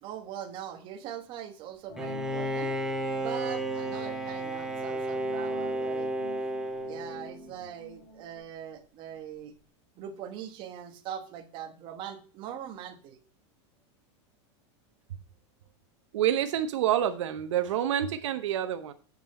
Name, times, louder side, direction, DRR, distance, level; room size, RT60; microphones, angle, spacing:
voice 1, 0.0-2.7 3.1-6.1 6.9-9.5 10.0-13.2, right 9 dB, 30° right, 6 dB, 1.1 m, -41 dB
sound 1, 1.9-8.4, equal, 30° left, 1.9 m, -47 dB
Bowed string instrument, 2.0-7.5, right 1 dB, 5° right, 0.9 m, -32 dB
voice 2, 16.1-18.9, right 10 dB, 80° right, 10 dB, 0.8 m, -27 dB
7.5 x 6.0 x 4.2 m, 0.39 s
supercardioid pair, 160°, 15 cm